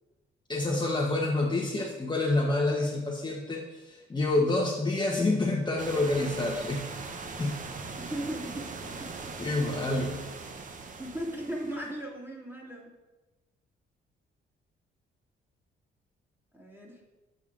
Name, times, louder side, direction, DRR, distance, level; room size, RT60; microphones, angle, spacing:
voice 1, 0.5-6.9 7.4-7.6 9.4-10.2, left 2 dB, 20° left, -2 dB, 0.8 m, -28 dB
sound 1, 5.8-12.0, right 4 dB, 40° right, 0.7 m, -41 dB
voice 2, 8.0-9.1 11.0-12.9 16.5-17.0, right 1 dB, 10° right, -4 dB, 1.9 m, -37 dB
7.2 x 6.6 x 2.4 m, 1.2 s
cardioid pair, 90°, 20 cm